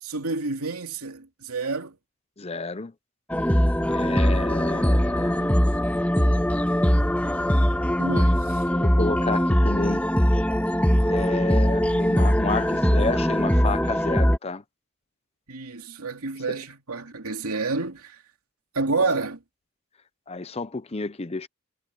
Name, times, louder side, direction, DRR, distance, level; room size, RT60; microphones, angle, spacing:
voice 1, 0.0-2.0 8.0-8.6 15.5-18.2 18.7-19.4, right 3 dB, 90° right, 2.8 m, -29 dB
voice 2, 2.4-2.9 3.9-5.6 8.7-10.0 11.0-14.6 20.3-21.5, left 3 dB, 30° left, 0.7 m, -30 dB
sound 1, 3.3-14.4, equal, 5° left, 1.7 m, -21 dB
head